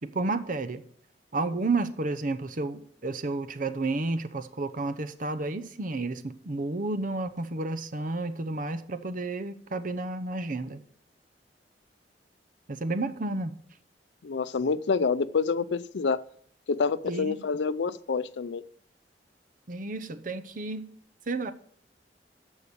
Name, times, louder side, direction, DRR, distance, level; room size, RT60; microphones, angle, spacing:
voice 1, 0.0-0.8 1.3-10.8 12.7-13.6 17.0-17.4 19.7-20.9 21.3-21.5, right 2 dB, 50° right, 0.8 m, -31 dB
voice 2, 14.2-16.2 16.7-18.6, left 5 dB, 80° left, 0.5 m, -27 dB
14.0 x 4.9 x 6.9 m
head